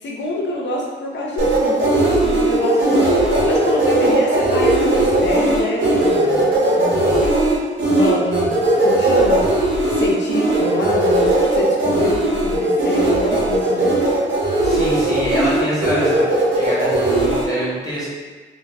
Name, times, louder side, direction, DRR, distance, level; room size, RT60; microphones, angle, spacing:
voice 1, 0.0-7.2 7.8-14.0, left 1 dB, 60° left, -3 dB, 0.6 m, -26 dB
sound 1, 1.4-17.4, right 1 dB, 65° right, 0.8 m, -18 dB
voice 2, 14.6-16.3 16.5-18.1, equal, 15° left, -8 dB, 1.0 m, -24 dB
2.7 x 2.3 x 3.2 m, 1.4 s
wide cardioid pair, 100°, 20 cm